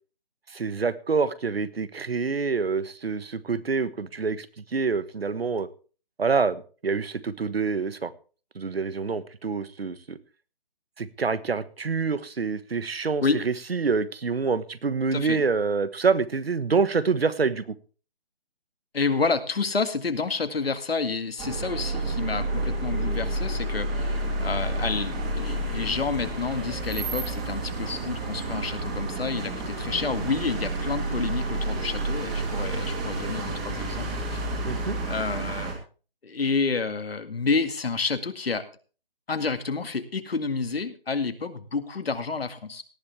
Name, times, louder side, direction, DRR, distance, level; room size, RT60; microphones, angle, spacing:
voice 1, 0.5-5.7 6.2-8.1 8.5-10.2 11.0-17.7 34.6-35.0, right 5 dB, 85° right, 16 dB, 1.4 m, -26 dB
voice 2, 18.9-34.4 35.0-35.7 36.2-38.6 39.3-42.8, left 4 dB, 80° left, 9 dB, 2.1 m, -29 dB
sound 1, 21.4-35.7, right 2 dB, 15° right, 2.3 m, -30 dB
18.0 x 10.5 x 3.4 m, 0.37 s
hypercardioid pair, 165°, 29 cm